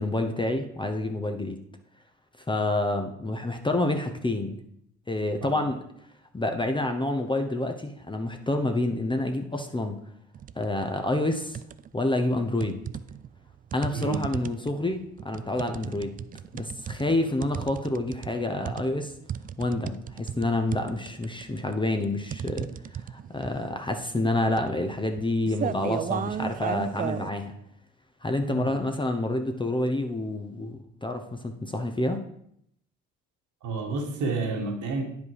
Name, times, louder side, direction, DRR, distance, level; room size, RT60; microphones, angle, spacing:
voice 1, 0.0-1.6 2.5-4.6 5.1-5.8 6.3-10.0 10.6-11.6 11.9-12.8 13.7-16.2 16.5-19.1 19.6-27.5 28.2-32.2, left 2 dB, 15° left, 5 dB, 0.9 m, -28 dB
sound 1, 10.3-10.7 11.1-12.0 12.6-27.3, right 8 dB, 25° right, 0.3 m, -35 dB
voice 2, 13.9-14.3 28.4-28.7 33.6-35.0, right 3 dB, 55° right, 1 dB, 2.0 m, -30 dB
9.6 x 5.2 x 4.8 m, 0.73 s
hypercardioid pair, 55°, 35 cm